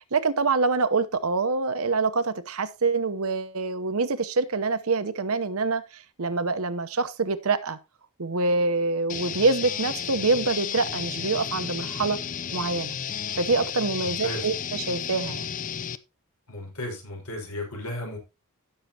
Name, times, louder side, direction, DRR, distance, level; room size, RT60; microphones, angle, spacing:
voice 1, 0.1-7.8 8.2-12.2 12.5-13.0 13.4-15.5, right 3 dB, 70° right, 0.9 m, -25 dB
sound 1, 9.1-16.0, left 8 dB, 35° left, 0.5 m, -32 dB
voice 2, 14.0-14.4 16.5-18.2, left 1 dB, 85° left, 5.1 m, -35 dB
16.5 x 6.6 x 2.9 m
head